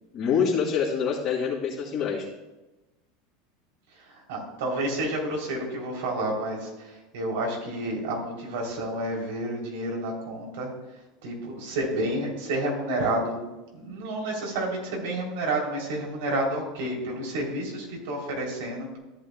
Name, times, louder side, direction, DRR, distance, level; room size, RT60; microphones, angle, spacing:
voice 1, 0.1-2.3, left 6 dB, 35° left, -7 dB, 2.3 m, -26 dB
voice 2, 4.0-10.7 11.2-13.4 13.7-19.0, right 1 dB, 80° right, -1 dB, 3.5 m, -30 dB
14.0 x 9.1 x 2.3 m, 1.1 s
supercardioid pair, 150°, 0 cm